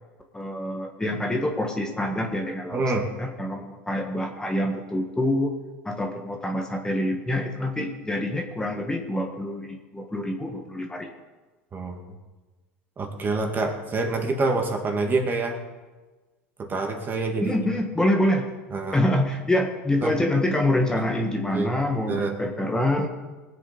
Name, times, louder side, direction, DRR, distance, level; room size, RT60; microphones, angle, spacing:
voice 1, 0.3-2.8 3.2-5.5 5.9-11.1 17.4-18.5 18.9-23.1, left 1 dB, 10° left, 2 dB, 1.7 m, -26 dB
voice 2, 2.7-3.1 11.7-12.0 13.0-15.6 16.6-17.6 18.7-19.0 20.0-20.2 21.5-21.7 22.1-22.4, right 3 dB, 30° right, 3 dB, 2.3 m, -26 dB
20.0 x 8.0 x 5.3 m, 1.3 s
hypercardioid pair, 95°, 7 cm